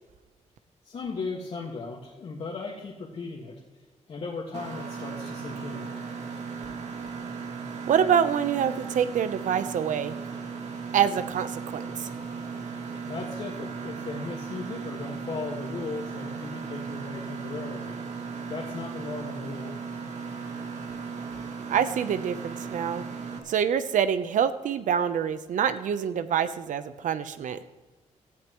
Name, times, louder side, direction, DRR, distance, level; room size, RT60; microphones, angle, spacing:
voice 1, 0.8-3.6 4.1-5.9 13.1-17.9 18.5-19.8 27.0-27.1, left 4 dB, 50° left, -3 dB, 1.8 m, -37 dB
Mechanisms, 4.5-23.4, right 5 dB, 65° right, 2.3 m, -36 dB
voice 2, 7.9-10.1 10.9-12.1 21.7-23.0 23.5-27.6, right 8 dB, 90° right, 12 dB, 0.9 m, -26 dB
17.5 x 13.5 x 3.1 m, 1.2 s
wide cardioid pair, 155°, 13 cm